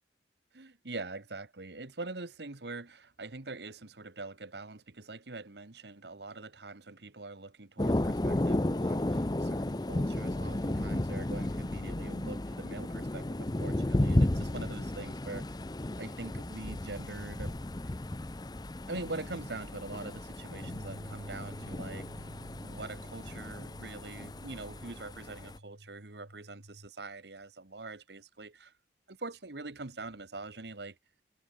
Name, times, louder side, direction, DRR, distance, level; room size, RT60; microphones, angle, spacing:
voice 1, 0.5-15.6 16.0-17.6 18.9-22.3 22.6-28.7 29.1-31.0, right 3 dB, 70° right, 1.4 m, -44 dB
Thunder, 7.8-25.6, left 1 dB, 20° left, 0.7 m, -33 dB
Bass guitar, 20.6-26.9, equal, 90° right, 4.6 m, -49 dB
head